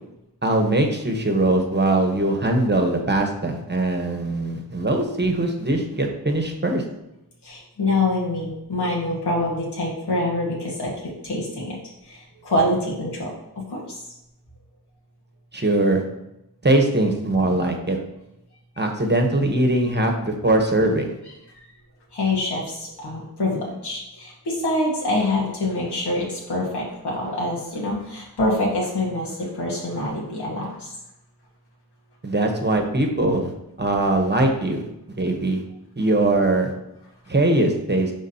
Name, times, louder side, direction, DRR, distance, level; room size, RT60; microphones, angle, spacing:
voice 1, 0.4-6.8 15.5-16.0 16.6-18.0 18.8-21.1 32.2-33.5 33.8-34.8 35.2-35.6 36.0-36.7 37.3-38.1, right 2 dB, 25° right, 3 dB, 1.1 m, -21 dB
voice 2, 7.4-10.9 11.2-11.7 12.1-13.3 13.7-14.0 22.1-30.9, left 2 dB, 80° left, -5 dB, 1.7 m, -25 dB
11.0 x 3.6 x 2.9 m, 0.87 s
wide cardioid pair, 65°, 40 cm